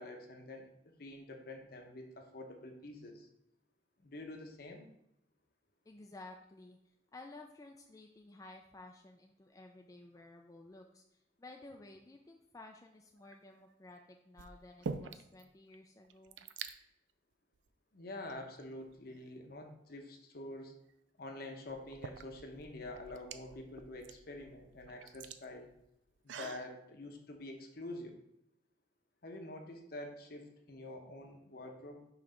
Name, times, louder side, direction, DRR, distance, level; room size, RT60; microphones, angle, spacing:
voice 1, 0.0-3.3 4.0-4.9 17.9-20.7 21.2-25.7 26.2-28.2 29.2-32.1, left 2 dB, 55° left, 4 dB, 0.9 m, -47 dB
voice 2, 5.9-16.4, left 2 dB, 20° left, 2 dB, 0.4 m, -54 dB
sound 1, 13.2-13.6 14.4-15.4 15.7-15.8 16.0-16.7 17.5-17.7 18.3-19.2 20.9-21.0 21.7-26.7, right 5 dB, 85° right, 0.4 m, -46 dB
5.9 x 3.2 x 5.1 m, 0.82 s
head